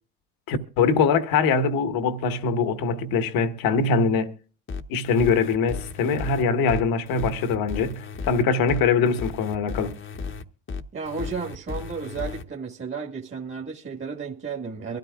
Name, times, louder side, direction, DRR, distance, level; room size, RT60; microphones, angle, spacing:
voice 1, 0.5-4.3 4.9-9.9, left 5 dB, 65° left, 1.3 m, -23 dB
sound 1, 4.7-12.4, left 5 dB, 30° left, 1.0 m, -35 dB
voice 2, 10.9-15.0, right 5 dB, 30° right, 1.7 m, -33 dB
23.0 x 13.0 x 2.4 m
hypercardioid pair, 70°, 38 cm